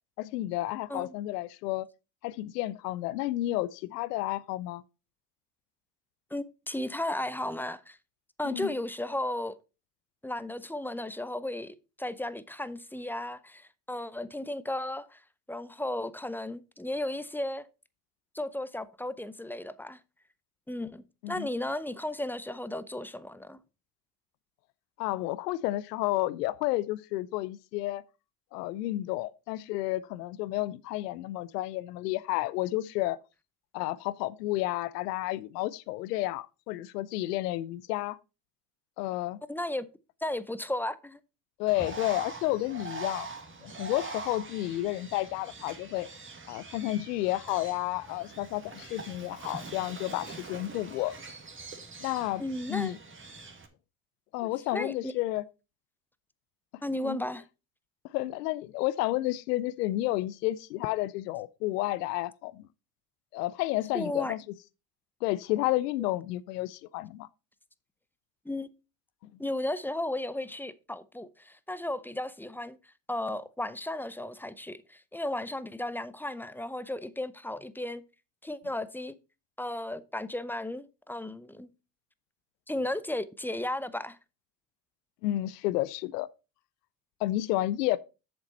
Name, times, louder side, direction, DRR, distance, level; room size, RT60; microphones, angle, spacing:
voice 1, 0.2-1.9 2.2-4.8 8.4-8.7 21.2-21.5 25.0-28.0 28.5-33.2 33.7-38.2 39.0-39.4 41.6-43.3 43.6-46.1 46.5-51.2 52.0-52.4 52.7-53.0 54.3-55.4 57.0-57.2 58.0-62.6 63.3-64.4 65.2-67.3 85.2-86.3 87.2-88.0, left 16 dB, 85° left, 0.6 m, -31 dB
voice 2, 6.3-8.0 8.4-9.6 10.2-15.2 15.5-17.7 18.3-20.0 20.7-23.6 39.5-39.9 40.2-41.2 52.4-52.9 54.4-55.1 56.8-57.4 63.9-64.3 68.4-68.7 69.4-72.8 73.1-78.0 78.4-79.2 79.6-81.7 82.7-84.2, left 1 dB, 5° left, 0.6 m, -35 dB
Bird, 41.7-53.7, right 3 dB, 25° right, 2.2 m, -43 dB
7.7 x 7.1 x 4.3 m
hypercardioid pair, 75°, 47 cm